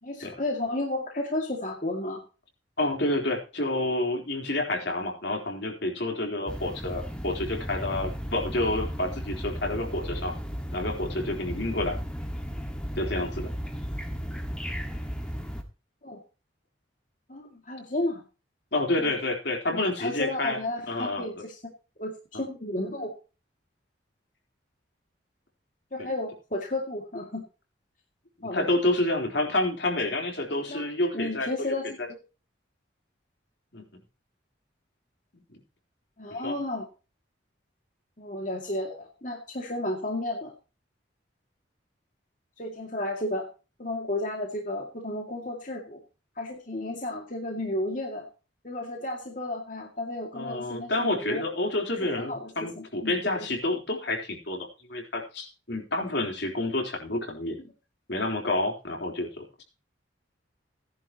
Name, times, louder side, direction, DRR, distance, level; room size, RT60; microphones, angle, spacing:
voice 1, 0.0-2.2 16.0-16.2 17.3-18.2 19.0-19.1 19.7-21.6 22.0-23.1 25.9-27.4 28.4-28.7 30.7-30.9 31.1-32.0 36.2-36.9 38.2-40.5 42.6-43.5 43.8-46.0 46.4-48.3 48.6-51.4 52.2-52.5 52.8-53.5, left 1 dB, 45° left, 1 dB, 2.4 m, -32 dB
voice 2, 2.8-10.3 10.7-12.0 13.0-13.5 18.7-20.6 20.9-21.3 22.3-22.4 28.4-31.7 32.0-32.1 33.7-33.8 35.5-35.6 36.4-36.5 50.3-57.6 58.1-59.6, left 2 dB, 65° left, 1 dB, 3.7 m, -29 dB
sound 1, 6.5-15.6, equal, 5° left, 1.8 m, -35 dB
17.5 x 11.0 x 3.0 m, 0.33 s
head